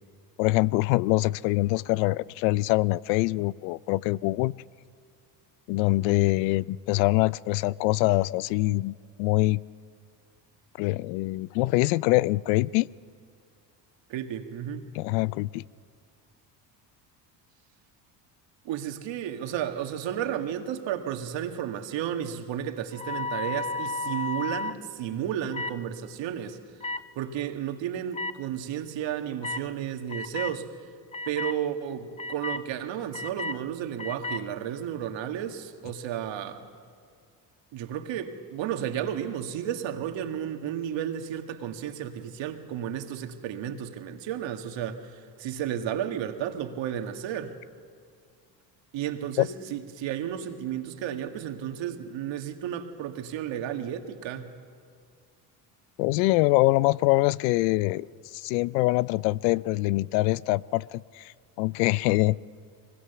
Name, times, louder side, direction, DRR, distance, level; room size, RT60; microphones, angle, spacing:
voice 1, 0.4-4.5 5.7-9.6 10.8-12.9 14.9-15.6 49.4-49.5 56.0-58.1 58.3-61.3 61.6-62.4, left 20 dB, 85° left, 0.6 m, -24 dB
voice 2, 14.1-14.8 18.7-26.6 27.2-30.7 31.3-36.6 37.7-47.6 48.9-54.5, right 10 dB, 65° right, 2.0 m, -33 dB
sound 1, 22.9-24.8 25.5-25.8 26.8-27.0 28.1-28.3 29.4-29.6 30.1-30.6 31.1-31.6 32.2-32.6 33.1-33.6 34.0-34.4, left 3 dB, 15° left, 0.6 m, -32 dB
23.5 x 21.0 x 6.9 m
supercardioid pair, 80°, 49 cm